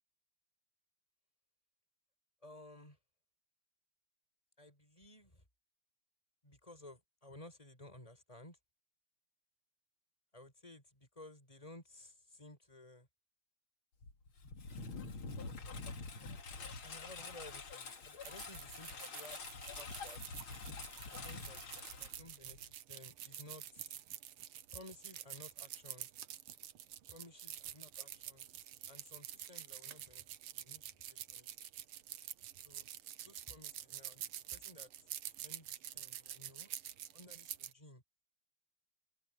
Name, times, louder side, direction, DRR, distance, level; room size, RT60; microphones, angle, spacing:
voice 1, 2.4-3.0 4.6-5.4 6.4-8.6 10.3-13.1 16.8-20.2 21.1-22.6 22.9-24.0 24.7-26.1 27.1-28.5 28.8-30.3 30.5-31.5 32.6-32.9 33.2-34.9 35.4-36.7 37.1-38.0, left 1 dB, 15° left, 6.6 m, -56 dB
Engine, 14.0-22.8, left 4 dB, 70° left, 3.3 m, -47 dB
sound 1, 18.2-37.7, right 12 dB, 85° right, 1.9 m, -48 dB
omnidirectional pair, 2.4 m